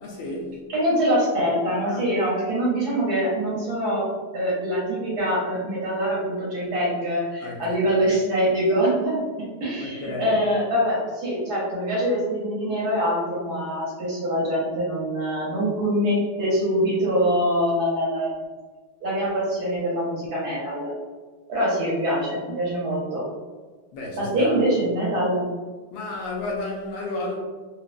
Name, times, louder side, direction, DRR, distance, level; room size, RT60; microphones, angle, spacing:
voice 1, 0.0-0.6 1.8-2.0 7.4-8.0 9.8-10.4 23.9-24.6 25.9-27.4, left 2 dB, 75° left, 1.3 m, -32 dB
voice 2, 0.7-4.0 4.3-9.2 9.6-18.3 19.0-20.9 21.5-23.2 24.1-25.4, equal, 60° right, 1.2 m, -24 dB
4.0 x 2.3 x 2.4 m
omnidirectional pair, 2.3 m